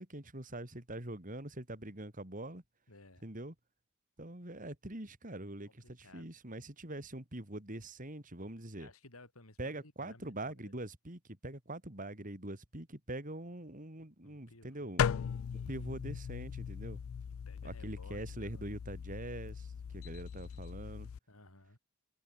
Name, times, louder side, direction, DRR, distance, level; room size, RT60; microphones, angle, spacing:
voice 1, 0.0-2.6 3.2-3.5 4.2-8.9 9.6-15.1 15.5-17.0 17.6-19.7 19.9-21.1, right 1 dB, 40° right, 3.3 m, -44 dB
voice 2, 2.9-3.3 5.8-6.3 8.8-10.7 14.2-16.0 17.5-19.0 21.3-21.8, left 2 dB, 85° left, 7.4 m, -58 dB
sound 1, 15.0-21.2, left 7 dB, 70° left, 0.4 m, -38 dB
head